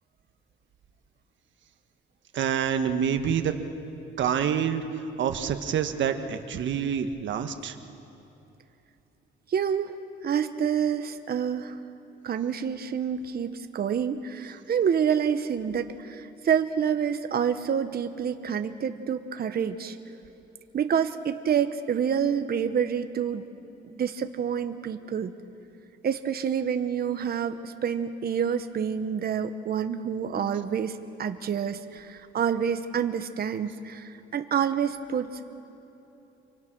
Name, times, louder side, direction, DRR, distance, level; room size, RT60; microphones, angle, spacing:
voice 1, 2.3-3.5 4.2-4.8 5.2-7.7, right 8 dB, 70° right, 7 dB, 1.6 m, -27 dB
voice 2, 9.5-10.0 10.2-11.8 12.2-20.0 20.7-23.4 23.9-25.3 26.0-35.3, right 8 dB, 50° right, 8 dB, 1.1 m, -28 dB
28.0 x 24.0 x 6.2 m, 3.0 s
cardioid pair, 90°, 20 cm